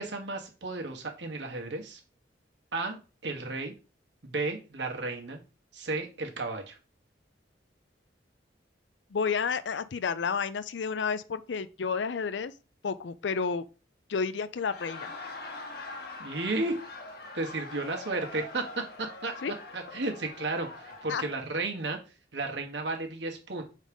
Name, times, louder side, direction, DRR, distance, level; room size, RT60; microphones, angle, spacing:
voice 1, 0.0-2.0 2.7-3.7 4.2-5.4 5.7-6.8 16.2-16.7 17.3-19.3 19.7-22.0 22.3-23.6, right 2 dB, 75° right, 1.4 m, -33 dB
voice 2, 9.1-12.5 12.8-13.6 14.1-15.1 19.4-19.5 21.1-21.2, left 5 dB, 75° left, 0.5 m, -31 dB
Laughter, 14.5-21.4, left 2 dB, 60° left, 1.2 m, -43 dB
4.8 x 4.1 x 5.3 m
head